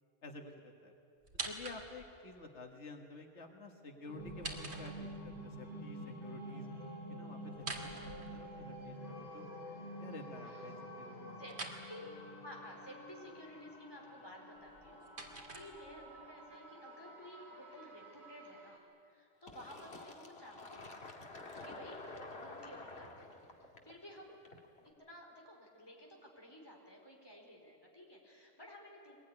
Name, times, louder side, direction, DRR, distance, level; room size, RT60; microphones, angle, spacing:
voice 1, 0.2-0.9 1.4-6.7 7.1-9.5 10.0-11.4, left 3 dB, 85° left, 3 dB, 2.0 m, -51 dB
sound 1, 1.2-2.2 4.2-5.4 7.5-8.8 11.5-11.8 14.6-16.2, right 2 dB, 70° right, 2.6 m, -46 dB
sound 2, 4.1-18.8, equal, 45° right, 4.5 m, -49 dB
voice 2, 12.4-18.8 19.0-21.2 21.6-22.0 22.3-24.4 24.8-29.2, equal, 20° left, -1 dB, 4.5 m, -54 dB
Fill (with liquid), 19.5-24.9, left 2 dB, 65° left, 2.3 m, -50 dB
22.5 x 19.5 x 9.9 m, 2.5 s
omnidirectional pair, 1.1 m